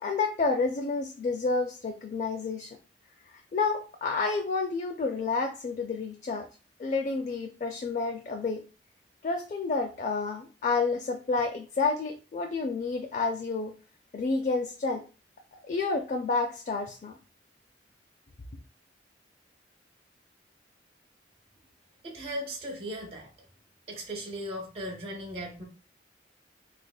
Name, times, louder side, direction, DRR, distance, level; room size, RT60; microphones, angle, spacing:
voice 1, 0.0-2.7 3.5-6.4 6.8-8.6 9.2-13.7 14.1-15.0 15.7-17.1, left 4 dB, 45° left, 3 dB, 0.4 m, -29 dB
voice 2, 22.0-23.3 23.9-25.6, equal, 35° right, 0 dB, 0.7 m, -37 dB
3.5 x 3.3 x 2.2 m, 0.34 s
head